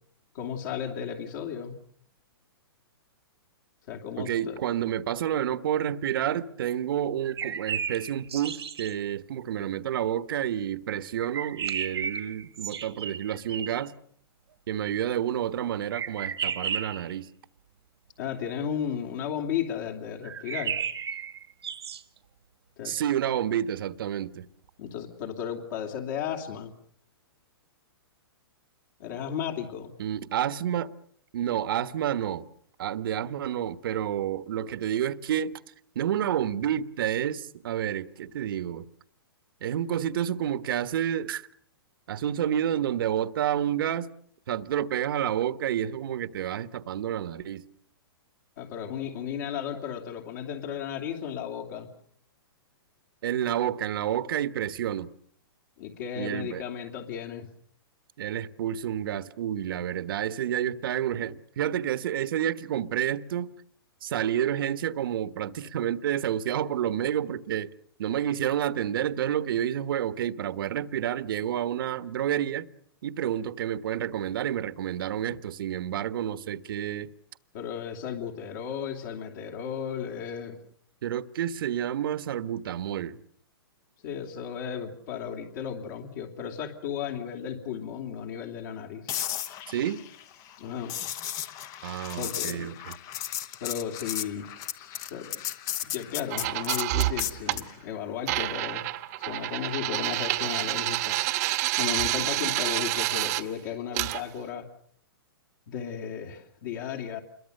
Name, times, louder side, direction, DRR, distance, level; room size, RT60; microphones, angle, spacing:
voice 1, 0.3-1.7 3.9-4.6 18.2-20.8 22.8-22.9 24.8-26.7 29.0-29.9 48.6-51.9 55.8-57.5 77.5-80.6 84.0-89.1 90.6-90.9 92.2-92.7 93.6-94.5 94.7-95.4 95.8-98.8 99.2-101.2 101.8-104.7 105.7-107.2, left 8 dB, 45° left, 3.0 m, -34 dB
voice 2, 4.2-13.9 14.7-17.3 22.8-24.5 30.0-30.9 31.3-32.5 32.8-35.6 35.9-38.9 39.6-41.5 42.1-44.1 44.5-47.6 53.2-55.1 56.2-56.6 58.2-63.5 64.0-67.7 68.0-72.7 73.0-77.1 81.0-83.2 89.7-90.0 91.8-92.9, right 10 dB, 60° right, 1.4 m, -29 dB
sound 1, 7.2-8.9 11.2-13.9 15.9-17.1 20.2-22.0, right 7 dB, 90° right, 2.2 m, -33 dB
sound 2, 89.1-97.7 101.9-102.2, left 11 dB, 25° left, 1.1 m, -35 dB
sound 3, 96.3-97.6 98.3-103.4 103.9-104.2, right 18 dB, 40° right, 1.2 m, -28 dB
28.5 x 22.5 x 6.7 m
hypercardioid pair, 155°, 13 cm